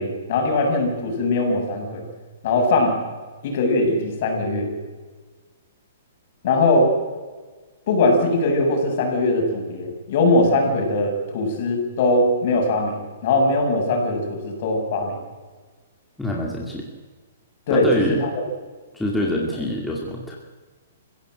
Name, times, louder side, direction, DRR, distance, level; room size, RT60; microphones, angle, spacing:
voice 1, 0.0-2.0 2.4-3.0 3.4-4.7 6.4-6.9 7.9-15.2 17.7-18.3, left 2 dB, 45° left, 2 dB, 7.3 m, -21 dB
voice 2, 16.2-16.9 17.7-18.2 18.9-20.4, left 1 dB, 5° left, -2 dB, 2.3 m, -25 dB
29.0 x 16.0 x 7.9 m, 1.4 s
hypercardioid pair, 165°, 0 cm